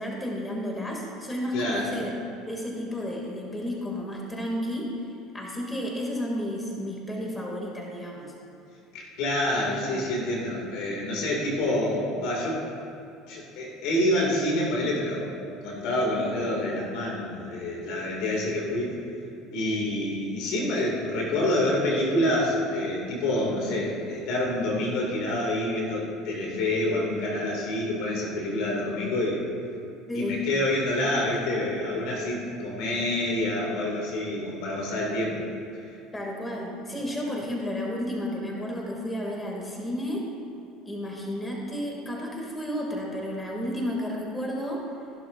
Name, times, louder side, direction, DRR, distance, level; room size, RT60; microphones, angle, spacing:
voice 1, 0.0-2.1 2.4-4.9 5.3-8.3 30.1-30.4 36.1-40.2 40.8-44.8, equal, 15° left, -1 dB, 2.7 m, -32 dB
voice 2, 1.5-1.8 8.9-12.6 13.3-15.3 15.6-18.9 19.5-29.4 30.1-35.5, left 1 dB, 60° left, -2 dB, 2.6 m, -27 dB
15.5 x 11.5 x 2.7 m, 2.6 s
hypercardioid pair, 65°, 0 cm